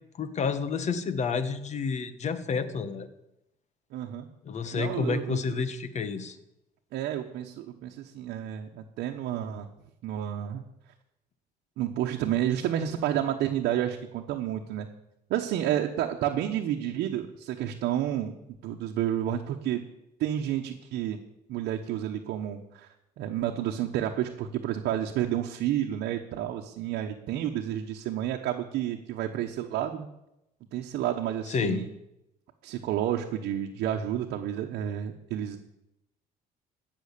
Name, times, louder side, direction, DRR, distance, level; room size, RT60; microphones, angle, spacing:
voice 1, 0.2-3.1 4.4-6.4 31.5-31.8, left 5 dB, 45° left, 12 dB, 1.2 m, -30 dB
voice 2, 3.9-4.3 4.7-5.6 6.9-9.7 10.0-10.6 11.8-14.9 15.3-18.3 18.6-19.8 20.2-21.2 21.5-30.1 30.7-31.9 32.6-35.6, right 11 dB, 80° right, 2 dB, 1.0 m, -30 dB
15.0 x 6.3 x 8.3 m, 0.90 s
cardioid pair, 110°, 17 cm